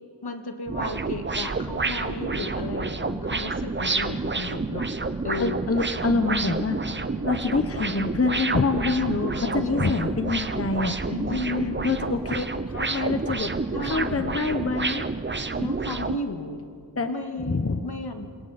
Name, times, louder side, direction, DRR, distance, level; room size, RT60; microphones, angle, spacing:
voice 1, 0.2-4.9 5.2-5.6 9.0-10.2 11.3-11.9 13.7-14.4 15.6-16.6 17.1-18.3, left 2 dB, 65° left, 5 dB, 2.0 m, -34 dB
sound 1, 0.7-16.2, right 3 dB, 25° right, 0.8 m, -29 dB
voice 2, 5.4-7.0 7.2-11.4 11.8-13.5 13.8-15.1 17.0-17.1 17.5-17.8, left 3 dB, 35° left, 7 dB, 1.0 m, -26 dB
29.0 x 26.5 x 4.3 m, 2.2 s
wide cardioid pair, 75°, 43 cm